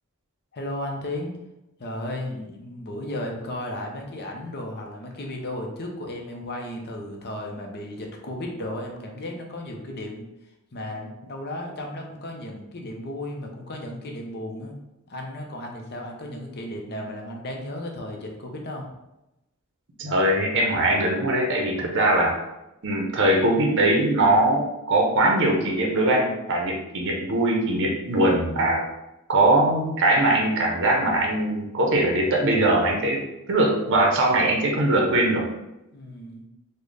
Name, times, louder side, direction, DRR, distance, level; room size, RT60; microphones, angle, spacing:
voice 1, 0.5-1.4 1.8-10.2 10.7-14.8 15.1-18.9 35.9-36.4, left 1 dB, 45° left, 1 dB, 0.6 m, -34 dB
voice 2, 20.0-22.3 22.8-28.8 29.3-33.2 33.5-35.4, right 1 dB, 55° right, 0 dB, 0.6 m, -21 dB
3.9 x 2.1 x 3.3 m, 0.92 s
head